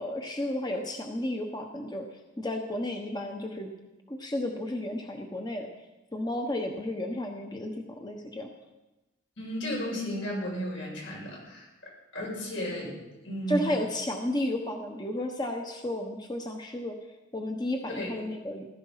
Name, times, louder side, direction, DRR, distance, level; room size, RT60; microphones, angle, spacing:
voice 1, 0.0-2.0 2.4-3.7 4.1-5.7 6.1-8.5 13.5-16.9 17.3-18.7, left 1 dB, 20° left, 3 dB, 1.1 m, -32 dB
voice 2, 9.4-13.0 13.2-13.7 17.9-18.2, equal, 80° left, -3 dB, 7.6 m, -34 dB
16.0 x 14.5 x 5.7 m, 1.1 s
head